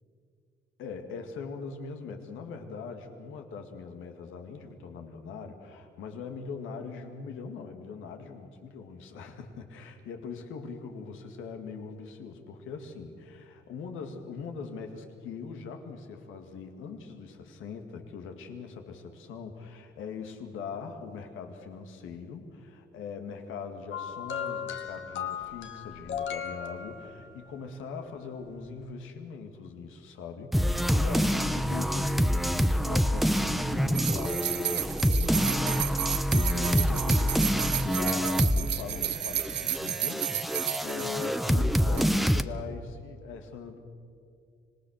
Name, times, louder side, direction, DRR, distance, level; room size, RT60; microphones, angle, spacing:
voice 1, 0.8-43.8, left 5 dB, 90° left, 4 dB, 2.3 m, -41 dB
sound 1, 23.9-27.5 28.5-28.7, left 8 dB, 75° left, 1.7 m, -36 dB
sound 2, 30.5-38.7 39.0-42.4, equal, ahead, 0.8 m, -26 dB
sound 3, 33.9-41.6 41.9-42.0, right 12 dB, 60° right, 0.6 m, -32 dB
26.0 x 18.5 x 6.6 m, 2.3 s
cardioid pair, 90°, 20 cm